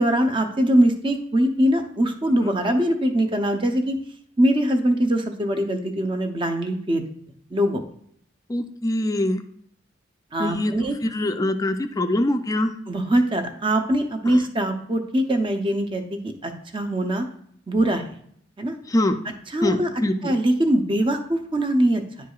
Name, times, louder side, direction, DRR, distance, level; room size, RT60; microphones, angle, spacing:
voice 1, 0.0-4.0 4.4-7.0 7.5-7.8 10.3-11.0 12.9-17.3 17.7-18.0 18.6-18.8 19.5-19.9 20.2-22.0, right 1 dB, 25° right, 6 dB, 0.7 m, -22 dB
voice 2, 8.5-9.4 10.4-10.7 11.0-12.7 14.3-14.4 18.9-19.2 19.6-20.3, left 1 dB, 20° left, 7 dB, 0.4 m, -23 dB
10.0 x 4.7 x 2.3 m, 0.65 s
head